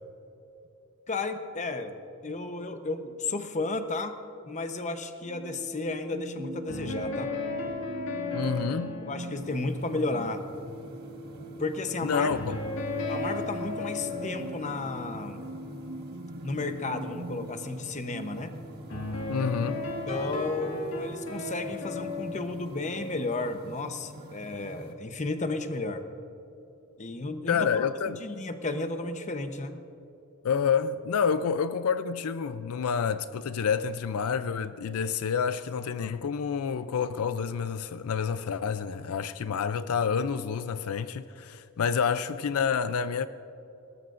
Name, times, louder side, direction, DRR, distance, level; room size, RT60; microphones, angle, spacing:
voice 1, 1.1-2.0 2.2-4.2 4.4-7.3 9.0-10.4 11.6-12.3 13.1-15.4 16.4-18.5 20.1-26.0 27.0-27.9 28.2-29.8, left 3 dB, 35° left, 0.8 m, -33 dB
sound 1, 5.2-22.2, equal, 80° right, 1.4 m, -43 dB
sound 2, 6.7-11.5 12.3-16.0 18.9-24.4, left 2 dB, 60° left, 1.9 m, -36 dB
voice 2, 8.3-9.0 12.0-12.6 19.3-19.8 27.5-28.2 30.4-43.3, left 6 dB, 80° left, 0.4 m, -28 dB
sound 3, 9.3-24.9, right 1 dB, 45° right, 1.5 m, -47 dB
20.5 x 19.0 x 2.5 m
head